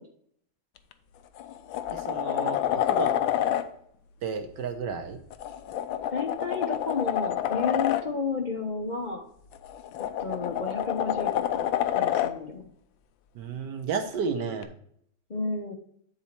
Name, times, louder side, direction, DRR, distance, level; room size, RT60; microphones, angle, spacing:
sound 1, 0.8-0.9 1.4-3.6 5.3-8.0 9.5-12.3 14.6-14.7, left 11 dB, 80° left, 1.3 m, -28 dB
voice 1, 1.9-3.1 4.2-5.2 13.3-14.7, right 5 dB, 65° right, 6 dB, 1.3 m, -32 dB
voice 2, 6.1-9.3 10.2-11.7 11.9-12.7 15.3-15.7, left 4 dB, 50° left, 2 dB, 0.5 m, -32 dB
9.5 x 4.1 x 4.4 m, 0.67 s
omnidirectional pair, 2.2 m